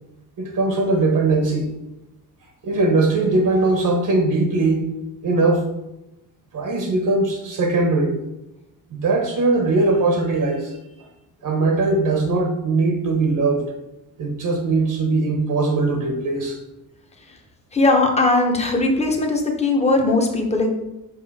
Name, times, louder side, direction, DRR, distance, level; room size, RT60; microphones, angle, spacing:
voice 1, 0.4-1.7 2.6-4.8 5.2-5.6 6.5-8.2 8.9-10.8 11.4-13.7 14.2-16.6, right 3 dB, 55° right, 3 dB, 1.1 m, -20 dB
voice 2, 17.7-20.7, left 2 dB, 15° left, 2 dB, 0.9 m, -19 dB
5.6 x 5.3 x 4.2 m, 0.94 s
cardioid pair, 155°, 38 cm